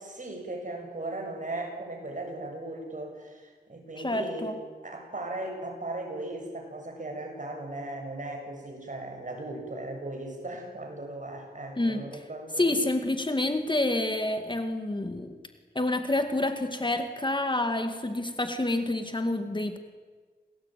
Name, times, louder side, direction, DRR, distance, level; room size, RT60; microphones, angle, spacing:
voice 1, 0.0-12.8, right 2 dB, 45° right, 2 dB, 7.4 m, -37 dB
voice 2, 4.0-4.5 11.8-12.1 12.6-15.4 15.8-19.8, left 2 dB, 25° left, 7 dB, 2.1 m, -28 dB
28.5 x 19.0 x 9.2 m, 1.5 s
wide cardioid pair, 80°, 18 cm